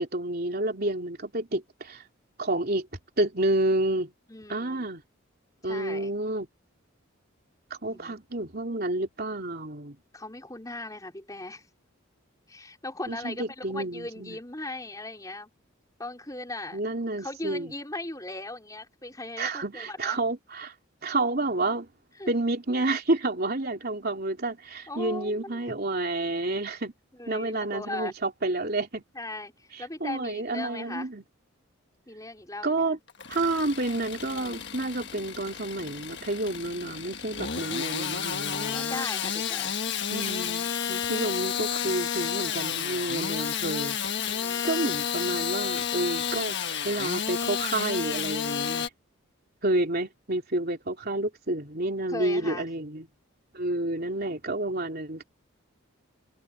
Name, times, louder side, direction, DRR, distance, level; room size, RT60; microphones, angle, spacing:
voice 1, 0.0-2.0 2.4-2.9 3.2-4.1 4.5-5.0 5.6-6.5 7.8-10.0 13.1-14.4 16.7-17.7 19.4-20.7 21.0-21.9 22.3-26.9 27.3-29.0 29.7-31.2 32.6-33.0 33.3-39.0 40.1-44.3 44.6-48.9 49.6-53.1 53.5-55.2, right 2 dB, 45° right, 3.4 m, -29 dB
voice 2, 4.3-4.9 5.6-6.1 7.8-8.2 10.1-11.7 12.5-15.5 16.0-16.8 17.2-20.2 22.2-22.3 24.9-25.8 27.1-28.1 29.1-31.1 32.1-32.9 38.5-39.8 44.2-44.9 52.1-52.6, left 2 dB, 15° left, 4.3 m, -38 dB
Engine starting / Sawing, 33.1-48.9, left 7 dB, 55° left, 1.5 m, -31 dB
head